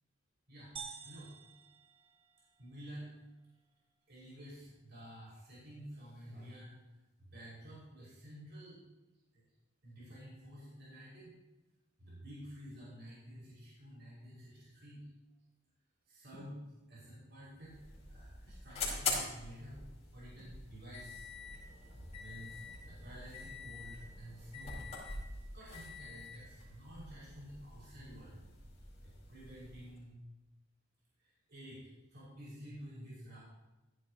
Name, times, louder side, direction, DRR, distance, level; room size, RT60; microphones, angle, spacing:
sound 1, 0.8-2.7, right 6 dB, 30° right, 0.7 m, -50 dB
voice 1, 2.6-3.1 4.1-6.7 7.2-8.8 9.3-9.4 9.8-11.3 12.0-15.1 16.1-16.6 16.9-17.8 18.1-19.8 20.1-21.3 22.2-24.8 25.5-28.4 29.0-30.2 31.2-33.4, equal, 60° right, -7 dB, 5.4 m, -51 dB
sound 2, 16.3-16.7 17.5-18.7 20.4-20.7, equal, 65° left, 2.3 m, -60 dB
sound 3, 17.6-30.0, left 3 dB, 30° left, 4.9 m, -44 dB
16.5 x 12.5 x 2.9 m, 1.0 s
head